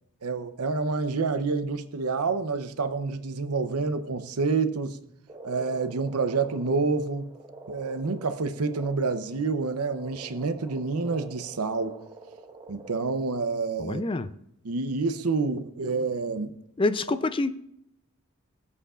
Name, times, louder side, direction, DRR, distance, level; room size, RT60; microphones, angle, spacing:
voice 1, 0.2-5.0 5.4-7.3 7.7-12.0 12.7-14.0 14.6-16.5, right 4 dB, 85° right, 0.7 m, -28 dB
Frog, 5.3-13.0, right 3 dB, 20° right, 0.9 m, -46 dB
voice 2, 13.8-14.3 16.8-17.5, left 2 dB, 25° left, 0.4 m, -26 dB
22.5 x 8.3 x 2.5 m
head